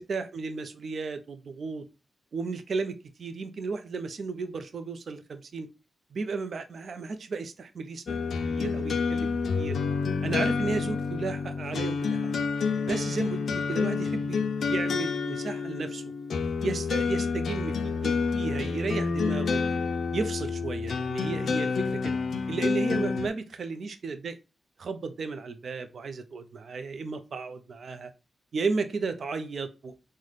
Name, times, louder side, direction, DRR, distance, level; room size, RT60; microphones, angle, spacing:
voice 1, 0.0-1.8 2.3-5.7 6.1-9.8 10.2-12.4 12.9-16.0 16.6-19.6 20.1-22.2 22.5-24.4 24.8-28.1 28.5-29.9, right 4 dB, 65° right, 9 dB, 0.4 m, -34 dB
sound 1, 8.1-23.3, left 5 dB, 75° left, 0.3 m, -29 dB
3.9 x 2.1 x 3.1 m, 0.29 s
cardioid pair, 65°, 0 cm